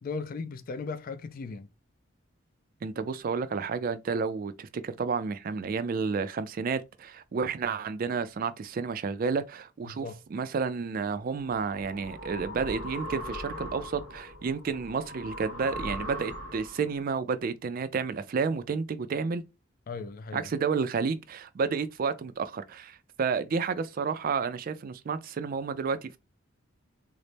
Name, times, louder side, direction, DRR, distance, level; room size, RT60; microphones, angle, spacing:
voice 1, 0.0-1.7 9.8-10.2 19.9-20.5, left 4 dB, 45° left, 0.3 m, -37 dB
voice 2, 2.8-19.4 20.3-26.2, right 5 dB, 45° right, 0.3 m, -31 dB
sound 1, 11.3-16.9, equal, 65° left, 1.5 m, -40 dB
4.0 x 2.0 x 3.3 m
head